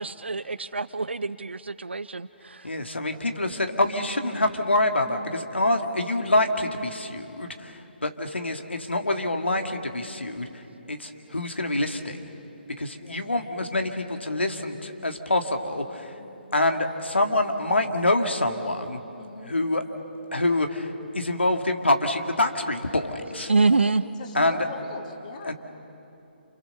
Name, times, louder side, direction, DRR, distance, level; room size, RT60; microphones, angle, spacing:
voice 1, 0.0-2.7 23.5-24.0, right 3 dB, 80° right, 13 dB, 0.6 m, -25 dB
voice 2, 2.6-10.5 10.9-12.2 12.8-16.1 16.5-19.0 19.5-19.8 20.3-23.5 24.3-24.6 25.4-25.5, left 2 dB, 85° left, 5 dB, 2.3 m, -26 dB
voice 3, 5.7-6.4 8.7-8.9 13.0-13.2 16.2-16.5 19.2-19.5 23.7-23.9 24.2-25.5, left 4 dB, 45° left, 3 dB, 3.1 m, -42 dB
29.0 x 28.5 x 6.8 m, 2.9 s
figure-of-eight pair, 140°, 6 cm